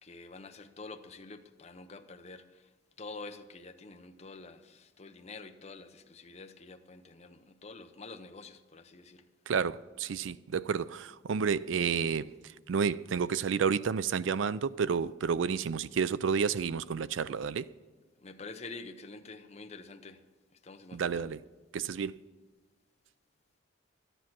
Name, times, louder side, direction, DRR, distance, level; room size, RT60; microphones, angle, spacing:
voice 1, 0.0-2.7 3.0-9.3 18.2-20.2 20.6-21.3, left 3 dB, 35° left, 0.7 m, -47 dB
voice 2, 9.5-12.3 12.7-17.7 20.9-21.4 21.7-22.1, right 6 dB, 80° right, 0.4 m, -30 dB
12.5 x 10.0 x 6.0 m
head